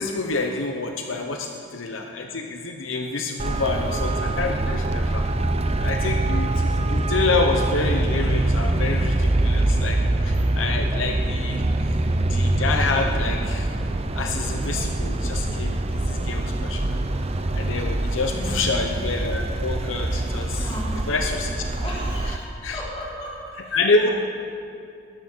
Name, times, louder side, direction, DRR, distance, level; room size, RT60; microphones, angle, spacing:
voice 1, 0.0-5.3 5.8-10.0 10.2-11.7 12.2-13.7 14.1-17.0 17.6-20.7 21.1-21.6 22.3-22.4 22.6-22.8 23.7-24.1, left 3 dB, 85° left, 3 dB, 0.8 m, -27 dB
Traffic noise roadway noise, 3.4-22.4, right 1 dB, 30° right, 0.6 m, -24 dB
voice 2, 18.3-18.7 20.6-21.1 21.8-24.1, equal, 30° left, -7 dB, 3.5 m, -36 dB
19.5 x 11.0 x 4.5 m, 2.5 s
head